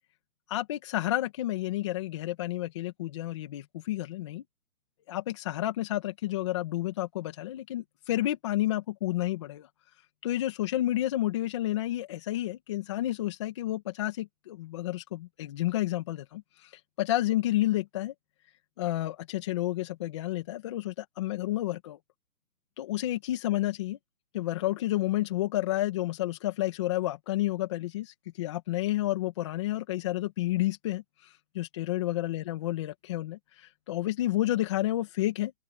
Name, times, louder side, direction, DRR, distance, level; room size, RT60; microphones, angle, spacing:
voice 1, 0.5-4.4 5.1-9.7 10.2-18.1 18.8-22.0 22.8-24.0 24.3-35.5, left 15 dB, 20° left, 2.1 m, -30 dB
open air
hypercardioid pair, 170°, 43 cm